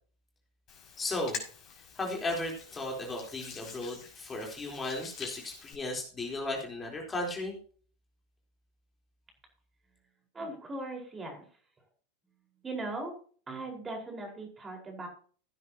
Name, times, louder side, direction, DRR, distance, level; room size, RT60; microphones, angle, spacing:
Hands, 0.7-5.7, left 6 dB, 40° left, 5.8 m, -46 dB
voice 1, 1.0-1.4 1.9-7.6, left 2 dB, 20° left, 0 dB, 4.0 m, -35 dB
voice 2, 10.3-11.4 12.6-13.2 13.5-15.1, right 2 dB, 20° right, 1 dB, 4.9 m, -39 dB
16.5 x 9.8 x 3.0 m, 0.43 s
hypercardioid pair, 95°, 0 cm